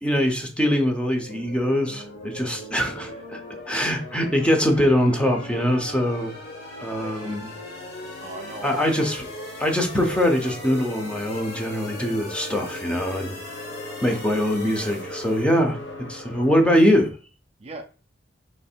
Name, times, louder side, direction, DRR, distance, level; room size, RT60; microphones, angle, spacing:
voice 1, 0.0-3.4 3.7-6.3 6.8-7.5 8.6-9.3 9.6-13.3 14.0-15.8 16.1-17.1, equal, 5° left, 0.6 m, -22 dB
sound 1, 0.6-17.1, left 1 dB, 85° left, 1.0 m, -41 dB
sound 2, 1.3-15.4, left 1 dB, 60° left, 1.3 m, -40 dB
voice 2, 7.0-7.4 8.2-8.9 14.1-14.4 17.6-17.8, right 2 dB, 35° right, 0.5 m, -40 dB
3.2 x 3.1 x 4.4 m
head